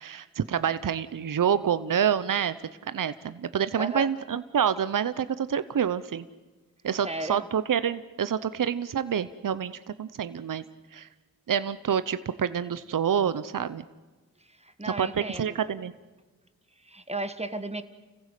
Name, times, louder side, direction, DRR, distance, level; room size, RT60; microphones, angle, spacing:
voice 1, 0.0-2.5 2.9-6.2 6.8-10.6 10.9-11.1 11.5-13.8 14.8-15.9, right 8 dB, 65° right, 14 dB, 0.8 m, -27 dB
voice 2, 3.8-4.1 7.0-7.5 14.6-15.6 16.9-17.8, right 2 dB, 20° right, 10 dB, 1.5 m, -34 dB
30.0 x 15.5 x 8.3 m, 1.2 s
cardioid pair, 50°, 35 cm